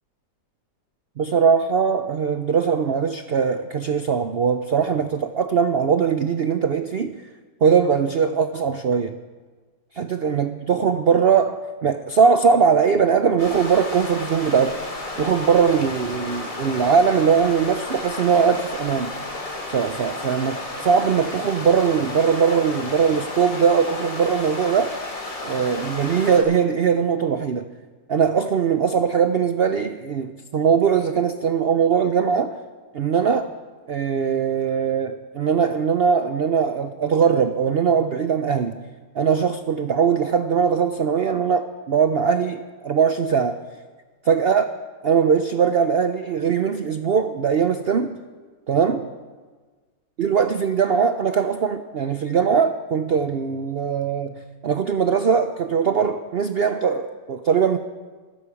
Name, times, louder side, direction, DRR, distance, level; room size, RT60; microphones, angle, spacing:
voice 1, 1.2-7.1 7.6-9.2 9.9-14.8 15.2-19.2 19.7-25.0 25.4-27.7 28.1-32.6 32.9-33.5 33.9-38.8 39.1-43.6 44.2-44.7 45.0-48.1 48.7-49.1 50.2-57.8, right 6 dB, 85° right, 9 dB, 0.5 m, -20 dB
sound 1, 13.4-26.4, left 2 dB, 50° left, 3.1 m, -32 dB
14.5 x 14.0 x 7.0 m, 1.4 s
omnidirectional pair, 1.9 m